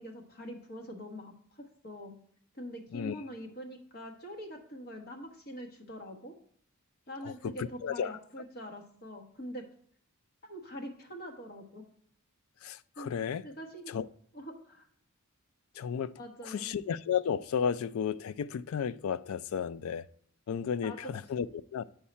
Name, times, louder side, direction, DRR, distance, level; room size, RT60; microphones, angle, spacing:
voice 1, 0.0-2.1 2.5-6.3 7.1-9.7 10.5-11.8 13.0-13.1 13.4-13.9 14.3-14.9 16.2-16.7 20.8-21.1, equal, 45° left, 1.2 m, -44 dB
voice 2, 7.2-8.1 12.6-13.4 13.9-14.1 15.8-20.1 20.5-21.5 21.7-21.8, left 7 dB, 80° left, 0.3 m, -33 dB
8.6 x 4.7 x 4.2 m
head